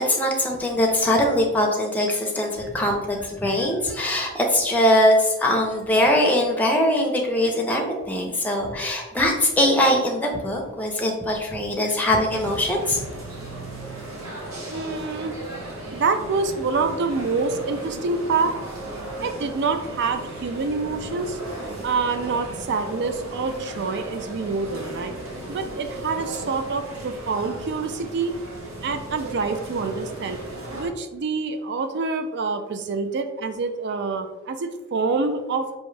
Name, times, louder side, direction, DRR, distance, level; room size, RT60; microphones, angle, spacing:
voice 1, 0.0-13.0, left 1 dB, 5° left, 0 dB, 0.6 m, -22 dB
sound 1, 12.3-30.9, right 1 dB, 70° right, 0.9 m, -36 dB
voice 2, 14.7-15.4 15.9-18.6 19.2-25.1 25.5-28.4 28.8-30.4 30.7-35.8, right 4 dB, 55° right, 8 dB, 0.4 m, -26 dB
4.7 x 2.6 x 3.2 m, 1.1 s
head